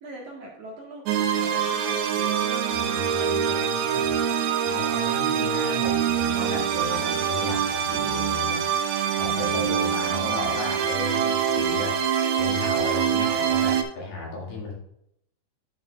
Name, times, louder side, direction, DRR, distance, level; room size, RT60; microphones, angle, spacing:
voice 1, 0.0-4.8 9.7-9.8, right 2 dB, 55° right, -2 dB, 2.3 m, -43 dB
sound 1, 1.1-13.8, right 8 dB, 80° right, 1.7 m, -25 dB
voice 2, 2.7-4.2 4.7-8.9 9.2-12.0 12.4-14.7, left 2 dB, 80° left, -3 dB, 4.4 m, -34 dB
11.0 x 6.9 x 2.4 m, 0.74 s
omnidirectional pair, 4.3 m